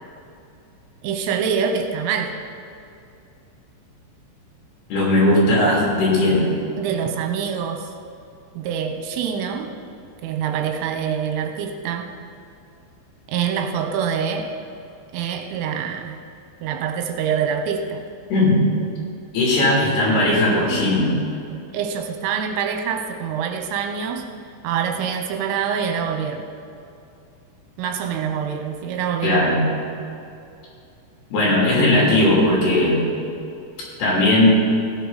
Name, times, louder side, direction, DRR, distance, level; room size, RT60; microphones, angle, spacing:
voice 1, 1.0-2.4 6.8-7.9 8.6-9.8 10.2-12.1 13.3-14.5 15.1-16.2 16.6-18.0 21.7-24.3 24.6-26.5 27.8-29.6, right 7 dB, 85° right, 5 dB, 3.5 m, -25 dB
voice 2, 4.9-6.5 18.3-18.6 19.3-21.1 29.2-29.6 31.3-33.0 34.0-34.6, left 1 dB, 60° left, -5 dB, 5.0 m, -17 dB
16.0 x 9.9 x 4.1 m, 2.6 s
omnidirectional pair, 5.7 m